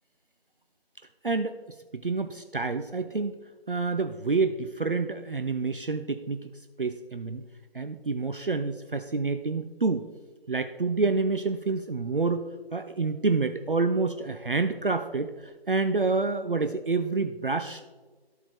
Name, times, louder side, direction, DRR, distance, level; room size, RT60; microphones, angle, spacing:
voice 1, 1.2-1.6 1.9-3.4 3.7-6.5 6.8-7.4 7.7-10.1 10.5-12.4 12.7-17.8, right 4 dB, 60° right, 8 dB, 0.5 m, -28 dB
13.5 x 4.6 x 3.3 m, 1.4 s
figure-of-eight pair, 165°, 31 cm